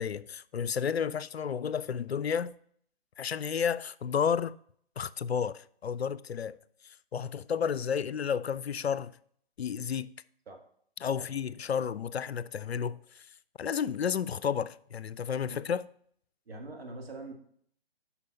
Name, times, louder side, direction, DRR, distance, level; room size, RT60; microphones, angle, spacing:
voice 1, 0.0-2.5 3.2-4.6 5.0-6.6 6.8-9.2 9.6-10.1 11.0-13.3 13.6-15.9, left 7 dB, 80° left, 0.5 m, -32 dB
voice 2, 16.5-17.3, right 2 dB, 70° right, 2.0 m, -43 dB
8.1 x 5.8 x 4.2 m
figure-of-eight pair, 135°, 31 cm